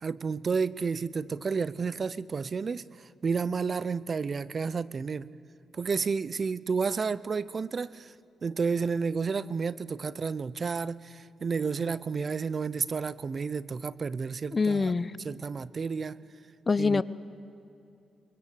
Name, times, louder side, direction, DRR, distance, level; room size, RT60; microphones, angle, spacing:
voice 1, 0.0-5.3 5.7-8.1 8.4-14.9 15.2-16.2 16.8-17.0, right 5 dB, 45° right, 19 dB, 0.6 m, -31 dB
voice 2, 14.5-15.1 16.7-17.0, left 4 dB, 35° left, 17 dB, 0.8 m, -25 dB
23.5 x 22.5 x 8.5 m, 2.7 s
supercardioid pair, 55°, 0 cm